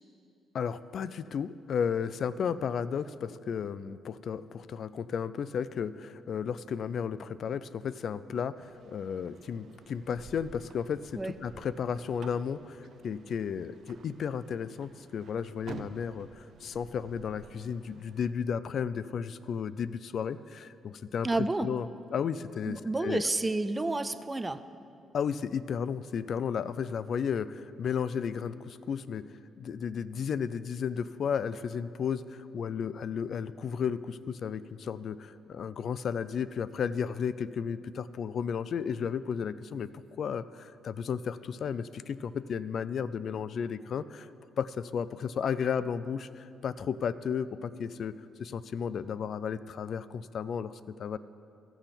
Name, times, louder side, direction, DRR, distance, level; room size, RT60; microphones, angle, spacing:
voice 1, 0.5-21.3 21.6-23.2 25.1-29.3 29.6-44.3 44.6-48.1 48.4-51.2, left 7 dB, 60° left, 16 dB, 0.3 m, -33 dB
sound 1, 8.6-18.3, right 6 dB, 60° right, 0.6 m, -52 dB
voice 2, 21.2-21.7 22.7-24.6, right 2 dB, 20° right, 13 dB, 0.4 m, -30 dB
14.5 x 6.9 x 5.8 m, 2.6 s
cardioid pair, 90°, 0 cm